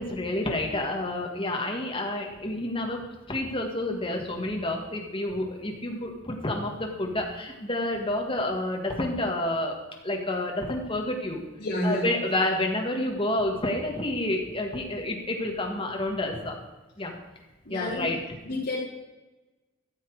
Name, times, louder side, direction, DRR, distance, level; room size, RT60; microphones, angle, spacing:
voice 1, 0.0-9.8 10.0-11.4 11.8-16.5 17.0-17.1 17.7-18.2, left 1 dB, 25° left, 1 dB, 1.8 m, -29 dB
voice 2, 11.6-12.2 17.6-18.1 18.4-18.8, left 1 dB, 55° left, -5 dB, 4.2 m, -30 dB
14.0 x 7.3 x 4.9 m, 1.1 s
head